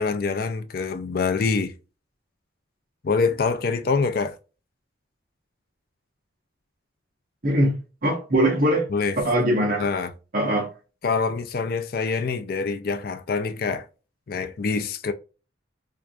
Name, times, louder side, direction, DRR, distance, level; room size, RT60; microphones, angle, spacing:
voice 1, 0.0-1.7 3.0-4.3 8.9-9.2 9.8-10.1 11.0-13.9 14.3-15.1, left 4 dB, 50° left, 0.4 m, -25 dB
voice 2, 7.4-7.8 8.0-8.9 9.2-9.9 10.3-10.7, right 1 dB, 45° right, 1.0 m, -21 dB
4.5 x 2.5 x 2.3 m
head